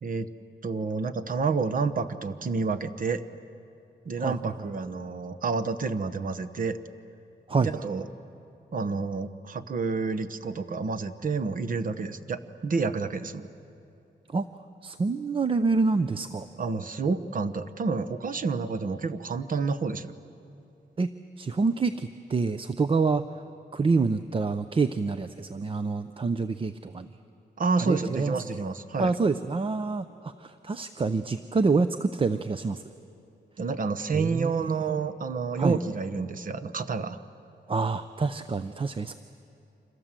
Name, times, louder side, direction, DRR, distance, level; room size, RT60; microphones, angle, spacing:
voice 1, 0.6-3.2 4.0-6.8 7.6-8.0 8.7-13.5 16.6-20.1 27.6-29.1 33.6-37.2, right 4 dB, 45° right, 11 dB, 1.0 m, -29 dB
voice 2, 4.2-4.9 7.5-7.7 14.3-14.5 14.8-16.5 21.0-23.2 23.7-27.1 27.8-28.6 29.0-32.8 34.1-34.9 35.6-35.8 37.7-39.1, right 4 dB, 30° right, 11 dB, 0.6 m, -27 dB
29.5 x 26.0 x 7.5 m, 2.7 s
wide cardioid pair, 155°, 19 cm